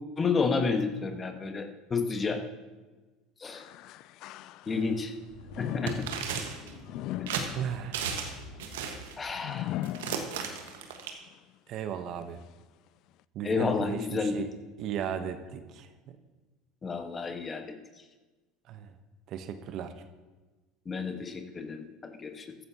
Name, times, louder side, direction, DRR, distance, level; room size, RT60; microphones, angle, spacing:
voice 1, 0.2-2.4 3.4-3.6 4.7-5.1 5.6-6.1 9.2-9.7 13.4-14.4 16.8-17.8 20.8-22.6, left 4 dB, 25° left, 6 dB, 1.3 m, -30 dB
sound 1, 3.5-5.0 5.5-10.8 11.3-11.4 12.2-12.3, left 15 dB, 60° left, 0.3 m, -39 dB
sound 2, 4.9-9.2, left 1 dB, 80° left, 1.6 m, -50 dB
sound 3, 5.9-6.7 7.3-7.5 7.9-8.3 8.6-9.1 9.8-11.1, right 7 dB, 75° right, 1.4 m, -34 dB
voice 2, 7.5-8.1 11.7-12.4 13.3-14.5 14.8-16.2 18.7-18.9 19.3-19.9, right 9 dB, 55° right, 9 dB, 0.9 m, -36 dB
14.5 x 12.5 x 2.9 m, 1.2 s
hypercardioid pair, 75°, 0 cm